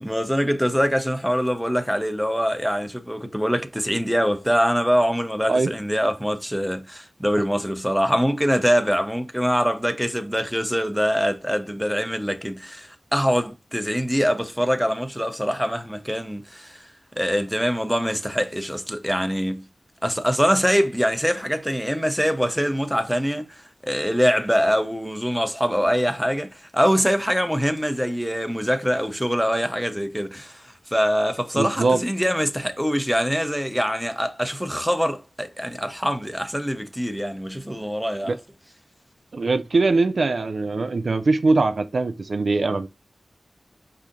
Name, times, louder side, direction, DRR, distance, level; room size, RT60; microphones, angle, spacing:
voice 1, 0.0-16.9 17.2-19.6 20.0-23.6 23.8-30.6 30.9-38.4, equal, ahead, 0.7 m, -23 dB
voice 2, 31.6-32.0 38.3-38.4 39.3-42.9, right 3 dB, 70° right, 0.4 m, -21 dB
4.8 x 2.8 x 3.7 m
wide cardioid pair, 60°, 0 cm